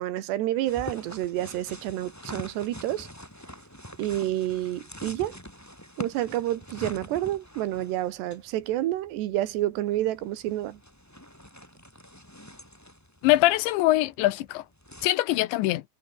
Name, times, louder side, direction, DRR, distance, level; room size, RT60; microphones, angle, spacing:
voice 1, 0.0-3.1 4.0-5.4 6.0-10.8, right 14 dB, 75° right, 3.4 m, -29 dB
sound 1, 0.7-15.1, equal, 5° left, 6.6 m, -45 dB
voice 2, 13.2-14.6 15.0-15.8, left 17 dB, 90° left, 3.3 m, -23 dB
omnidirectional pair, 5.0 m